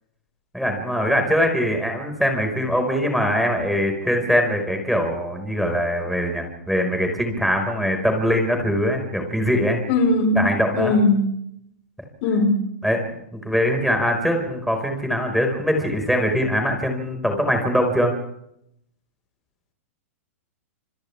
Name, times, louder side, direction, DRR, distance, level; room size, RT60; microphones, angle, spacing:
voice 1, 0.5-9.8 10.4-11.0 12.8-13.0 13.3-18.1, equal, ahead, 3 dB, 5.3 m, -22 dB
voice 2, 9.9-10.5 10.7-11.3 12.2-12.6, left 2 dB, 50° left, 5 dB, 4.7 m, -19 dB
29.0 x 27.0 x 3.6 m, 0.76 s
hypercardioid pair, 120°, 8 cm